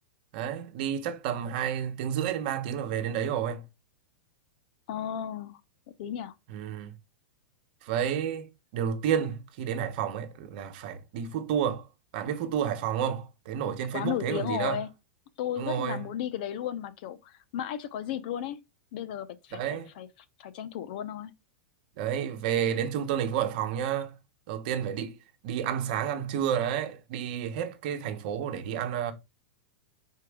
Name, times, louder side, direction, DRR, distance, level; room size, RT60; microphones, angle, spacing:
voice 1, 0.3-3.6 6.5-6.9 7.8-8.5 8.7-11.8 12.1-14.8 15.6-16.0 19.5-19.9 22.0-24.1 24.5-25.1 25.4-29.1, right 9 dB, 45° right, 1.2 m, -30 dB
voice 2, 4.9-5.5 6.0-6.3 13.9-14.9 15.4-18.6 18.9-20.1 20.4-21.3, left 10 dB, 45° left, 0.6 m, -34 dB
5.8 x 4.5 x 3.6 m
supercardioid pair, 170°, 7 cm